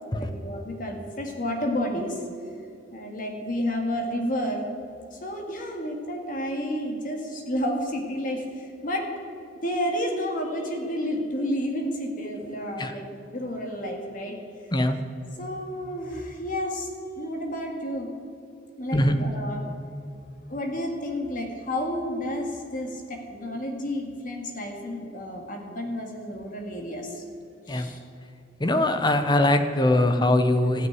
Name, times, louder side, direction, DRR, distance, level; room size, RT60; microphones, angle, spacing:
voice 1, 0.1-2.2 2.9-4.7 5.1-9.1 9.6-14.4 15.4-16.9 17.2-18.1 18.8-19.6 20.5-27.2 27.7-28.0, equal, 45° left, 2 dB, 1.9 m, -31 dB
voice 2, 28.6-30.9, left 1 dB, 25° left, 8 dB, 0.8 m, -22 dB
14.0 x 6.3 x 9.2 m, 2.5 s
head